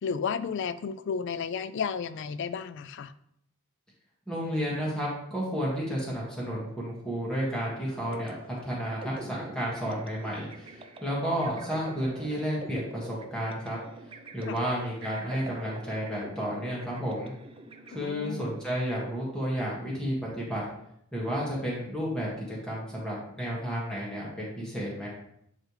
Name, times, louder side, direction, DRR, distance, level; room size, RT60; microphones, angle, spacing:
voice 1, 0.0-3.1 14.5-14.6 18.0-18.5, left 6 dB, 55° left, 15 dB, 0.3 m, -32 dB
voice 2, 4.3-8.3 8.6-13.8 14.3-17.3 17.9-20.6 21.1-25.1, equal, 5° left, -6 dB, 1.7 m, -32 dB
sound 1, 8.1-18.6, right 2 dB, 25° right, 0.4 m, -46 dB
10.0 x 3.4 x 3.2 m, 0.73 s
head